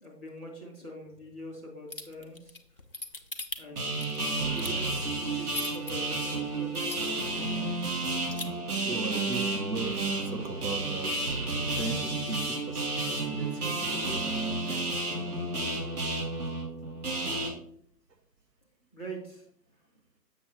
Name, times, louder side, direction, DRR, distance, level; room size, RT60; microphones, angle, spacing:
voice 1, 0.0-2.6 3.6-3.9 4.2-7.1 18.9-19.4, right 1 dB, 10° right, 0.7 m, -44 dB
sound 1, 1.9-5.9 6.4-6.5 6.7-7.4 7.7-7.8 8.1-8.4, left 2 dB, 40° left, 0.4 m, -39 dB
sound 2, 3.8-17.5, right 2 dB, 65° right, 2.1 m, -31 dB
voice 2, 8.8-14.3 14.7-14.8, right 3 dB, 85° right, 1.1 m, -38 dB
7.3 x 6.2 x 3.3 m
figure-of-eight pair, 145°, 48 cm